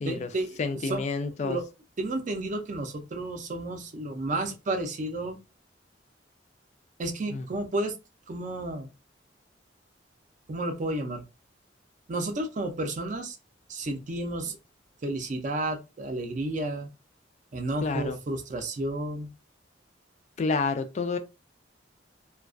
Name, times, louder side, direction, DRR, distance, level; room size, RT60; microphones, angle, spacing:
voice 1, 0.0-1.6 2.0-5.4 7.0-7.9 8.3-8.9 10.5-11.2 12.1-13.4 13.7-14.6 15.0-16.9 17.5-19.3, right 2 dB, 45° right, 0.4 m, -32 dB
voice 2, 0.6-1.6 7.3-7.4 17.8-18.2 20.4-21.2, left 4 dB, 40° left, 0.3 m, -29 dB
2.3 x 2.2 x 2.4 m
head